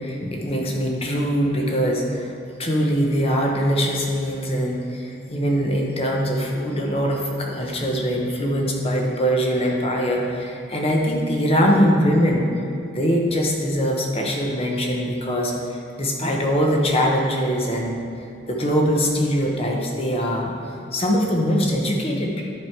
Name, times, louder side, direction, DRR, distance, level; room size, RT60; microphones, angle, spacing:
voice 1, 0.0-2.3 2.6-12.5 12.9-20.5 20.9-22.4, equal, 30° left, 0 dB, 0.9 m, -22 dB
10.5 x 5.0 x 4.5 m, 2.6 s
head